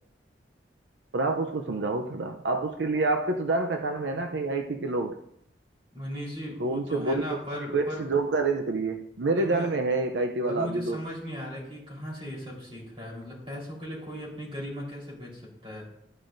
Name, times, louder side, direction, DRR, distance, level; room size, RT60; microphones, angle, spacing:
voice 1, 1.1-5.2 6.6-7.4 7.7-11.0, right 3 dB, 90° right, 0.6 m, -27 dB
voice 2, 5.9-8.0 9.4-9.7 10.5-15.9, equal, 30° right, 3.9 m, -37 dB
12.5 x 10.0 x 2.6 m
head